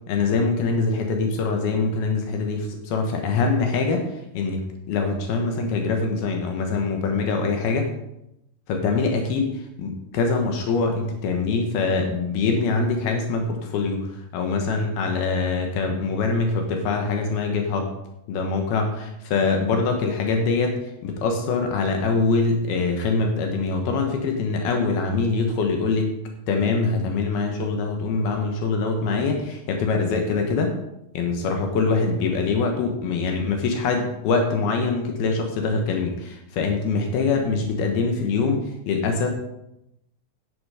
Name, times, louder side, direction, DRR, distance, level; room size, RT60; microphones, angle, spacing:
voice 1, 0.1-7.9 8.7-17.9 18.3-20.8 21.0-26.1 26.5-30.7 31.1-39.3, left 4 dB, 80° left, 3 dB, 3.2 m, -24 dB
10.0 x 9.8 x 4.9 m, 0.83 s
omnidirectional pair, 4.4 m